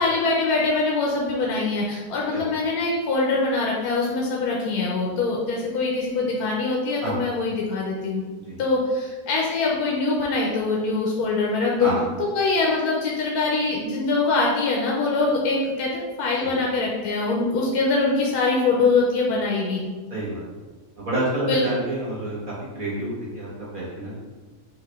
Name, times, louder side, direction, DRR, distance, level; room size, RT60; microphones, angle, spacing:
voice 1, 0.0-8.2 8.6-11.9 12.2-15.9 16.2-19.8 21.5-21.6, left 3 dB, 80° left, -3 dB, 1.2 m, -23 dB
voice 2, 20.1-20.4 21.0-23.5 23.7-24.2, right 1 dB, 35° right, -8 dB, 1.5 m, -28 dB
5.6 x 2.6 x 3.5 m, 1.3 s
omnidirectional pair, 1.6 m